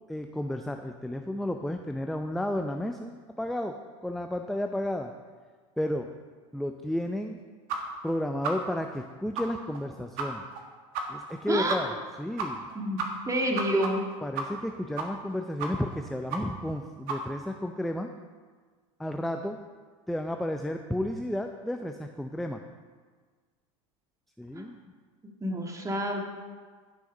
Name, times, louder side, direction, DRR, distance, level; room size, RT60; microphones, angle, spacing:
voice 1, 0.1-5.1 5.8-6.1 6.5-7.4 8.0-10.4 11.1-11.9 12.2-12.6 14.2-18.1 19.0-19.6 20.1-22.6 24.4-24.8, left 1 dB, ahead, 5 dB, 0.5 m, -32 dB
sound 1, 7.7-7.8 8.1-8.2 8.4-8.5 8.9-9.0 9.3-9.4 9.7-9.8 10.2-10.3 10.5-10.6 10.9-11.0 11.3-11.4 11.7-11.8 12.1-12.2 12.4-12.7 13.0-14.7 15.0-15.3 15.6-16.0 16.3-16.4 16.7-16.8 17.1-17.2, right 5 dB, 60° right, 1.7 m, -32 dB
voice 2, 11.5-11.9 12.7-13.0 13.3-14.0 24.5-24.7 25.2-26.2, right 1 dB, 20° right, 2 dB, 1.9 m, -28 dB
11.5 x 6.5 x 5.3 m, 1.5 s
hypercardioid pair, 95°, 17 cm